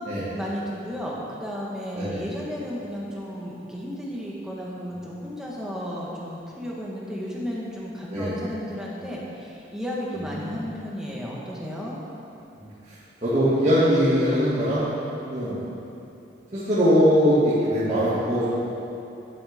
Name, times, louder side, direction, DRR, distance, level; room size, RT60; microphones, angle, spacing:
voice 1, 0.3-12.0, equal, 5° right, -5 dB, 1.3 m, -33 dB
voice 2, 13.2-14.9 15.3-15.6 16.5-18.5, equal, 40° right, -13 dB, 2.1 m, -21 dB
12.0 x 8.0 x 3.6 m, 2.9 s
head